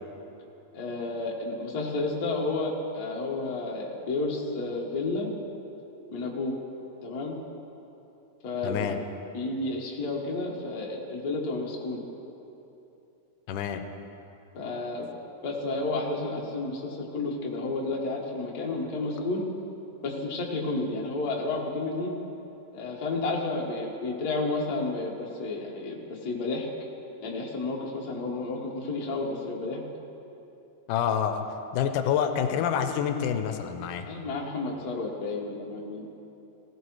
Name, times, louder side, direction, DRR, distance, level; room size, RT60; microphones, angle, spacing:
voice 1, 0.7-5.3 6.1-6.6 7.0-7.4 8.4-8.9 9.3-12.0 14.5-15.1 15.4-19.4 20.0-22.1 22.7-26.7 27.2-29.8 34.1-36.0, left 3 dB, 45° left, -2 dB, 1.3 m, -31 dB
voice 2, 8.6-9.0 13.5-13.8 30.9-31.5 31.7-34.1, left 8 dB, 85° left, 7 dB, 2.2 m, -27 dB
17.0 x 15.5 x 3.2 m, 2.9 s
omnidirectional pair, 3.6 m